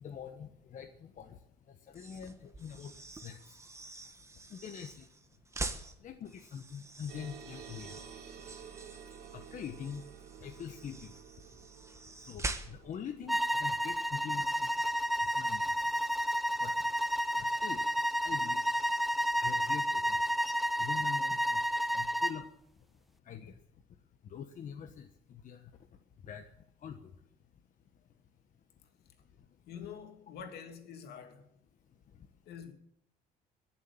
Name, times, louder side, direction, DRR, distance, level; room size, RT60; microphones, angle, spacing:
voice 1, 0.0-1.4 1.9-2.9 3.2-3.4 4.5-5.0 6.0-7.9 9.3-10.0 10.4-11.1 12.3-14.7 15.2-15.7 16.6-16.7 17.4-17.8 18.2-18.6 19.4-20.2 20.8-21.6 21.9-22.4 23.3-23.5 24.3-25.7 26.2-26.4 26.8-27.0, left 8 dB, 50° left, 1.3 m, -44 dB
sound 1, 1.9-13.0, right 2 dB, 15° right, 1.5 m, -45 dB
sound 2, 7.1-18.0, right 7 dB, 80° right, 3.0 m, -53 dB
sound 3, 13.3-22.4, equal, ahead, 0.6 m, -31 dB
voice 2, 29.7-31.5 32.5-32.7, left 7 dB, 70° left, 2.7 m, -46 dB
21.5 x 7.3 x 9.0 m
cardioid pair, 110°, 17 cm